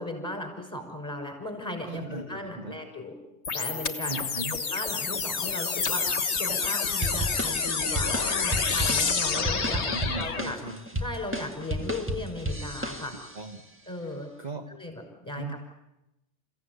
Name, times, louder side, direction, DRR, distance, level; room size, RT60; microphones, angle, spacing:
voice 1, 0.0-3.2 3.5-6.0 6.4-9.8 10.1-10.6 11.0-13.1 13.9-14.3 14.7-15.6, left 1 dB, 15° left, 3 dB, 6.1 m, -36 dB
voice 2, 1.9-2.8 4.1-4.6 9.8-10.8 13.1-13.6 14.4-14.6 15.4-15.6, right 3 dB, 35° right, 3 dB, 1.5 m, -38 dB
sound 1, 3.4-10.4, left 5 dB, 60° left, 1.7 m, -28 dB
sound 2, 7.0-13.4, right 1 dB, 10° right, 1.7 m, -33 dB
29.0 x 16.0 x 9.6 m, 0.93 s
omnidirectional pair, 1.3 m